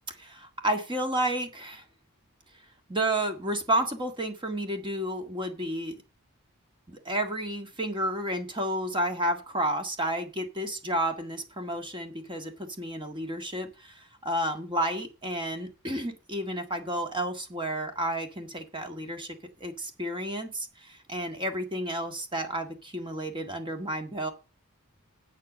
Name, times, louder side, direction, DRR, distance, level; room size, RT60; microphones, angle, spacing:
voice 1, 0.2-1.8 2.9-5.9 6.9-12.5 12.8-19.4 19.6-24.3, right 1 dB, 20° right, 5 dB, 1.8 m, -31 dB
8.1 x 7.7 x 7.4 m, 0.31 s
head